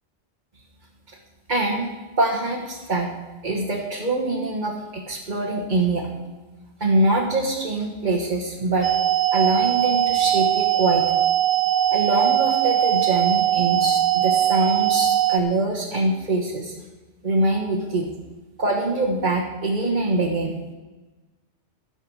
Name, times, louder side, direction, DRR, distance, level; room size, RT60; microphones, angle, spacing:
voice 1, 1.5-1.9 2.2-3.1 3.4-6.1 6.8-8.9 9.3-11.0 11.9-16.7 17.2-18.1 18.6-20.5, right 2 dB, 40° right, -4 dB, 1.6 m, -24 dB
sound 1, 8.8-15.4, right 12 dB, 60° right, 0.7 m, -20 dB
15.0 x 7.4 x 6.4 m, 1.2 s
omnidirectional pair, 1.2 m